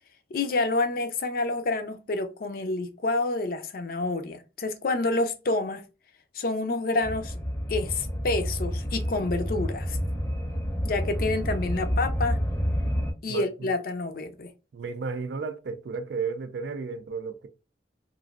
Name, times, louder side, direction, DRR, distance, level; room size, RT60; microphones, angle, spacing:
voice 1, 0.3-5.8 6.3-7.3 7.7-10.0 10.8-12.4 13.2-14.5, left 2 dB, 55° left, 0.4 m, -28 dB
sound 1, 7.0-13.1, equal, 10° left, 0.6 m, -29 dB
voice 2, 13.3-13.7 14.7-17.5, right 4 dB, 75° right, 0.4 m, -33 dB
3.0 x 2.5 x 2.4 m
head